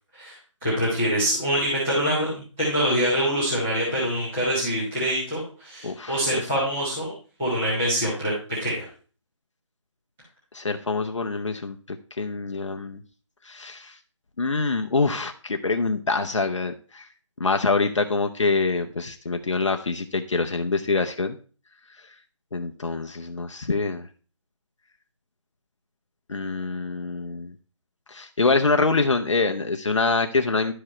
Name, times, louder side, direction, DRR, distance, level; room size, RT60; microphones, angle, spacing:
voice 1, 0.6-7.1 7.4-8.3 8.6-8.8, equal, ahead, -14 dB, 0.7 m, -25 dB
voice 2, 5.8-6.5 10.5-13.0 13.4-14.0 14.4-17.1 17.4-21.4 22.0-22.1 22.5-24.1 26.3-27.5 28.1-30.7, left 3 dB, 70° left, 4 dB, 0.8 m, -25 dB
11.0 x 4.9 x 4.3 m, 0.39 s
figure-of-eight pair, 175°, 16 cm